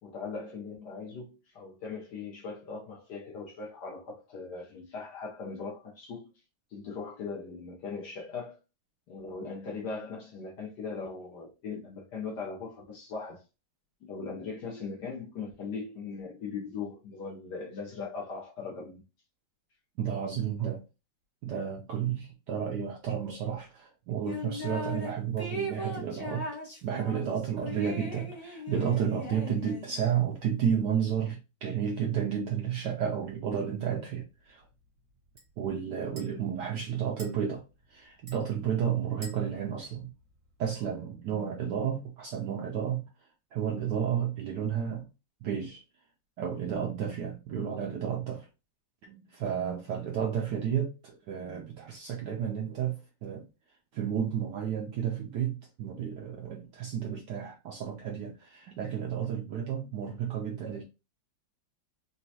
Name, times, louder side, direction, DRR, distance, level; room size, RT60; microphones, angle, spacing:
voice 1, 0.0-6.3 6.7-8.6 9.1-13.4 14.0-19.0, left 4 dB, 65° left, 1.2 m, -39 dB
voice 2, 20.0-20.8 21.4-26.5 26.8-34.6 35.6-37.6 37.9-40.1 40.6-43.1 43.5-45.1 45.4-45.8 46.4-48.5 49.0-53.5 53.9-60.8, right 8 dB, 75° right, 1.0 m, -32 dB
sound 1, 24.2-25.1 25.4-30.0, left 1 dB, 35° left, 0.6 m, -38 dB
sound 2, 33.1-40.9, equal, 45° right, 1.2 m, -56 dB
4.0 x 2.2 x 2.7 m
omnidirectional pair, 2.4 m